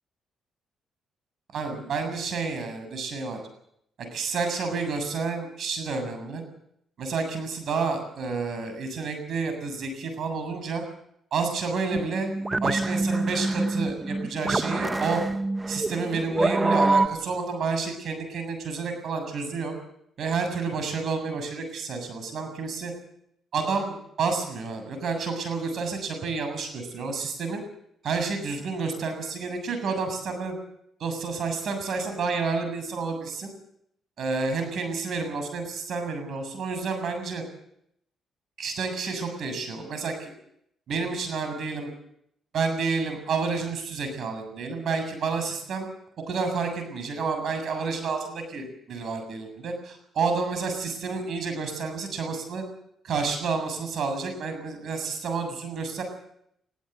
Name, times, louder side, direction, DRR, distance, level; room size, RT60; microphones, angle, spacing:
voice 1, 1.5-3.4 4.1-6.4 7.0-10.8 11.3-12.3 12.6-15.2 15.7-19.7 20.2-22.9 23.5-27.6 28.0-30.6 31.0-33.5 34.2-37.4 38.6-40.3 40.9-41.9 42.5-45.9 46.3-52.6 53.0-56.0, right 4 dB, 65° right, 7 dB, 7.1 m, -30 dB
sound 1, 11.9-17.1, right 2 dB, 20° right, 1.0 m, -26 dB
21.5 x 16.0 x 8.1 m, 0.74 s
cardioid pair, 90°, 0 cm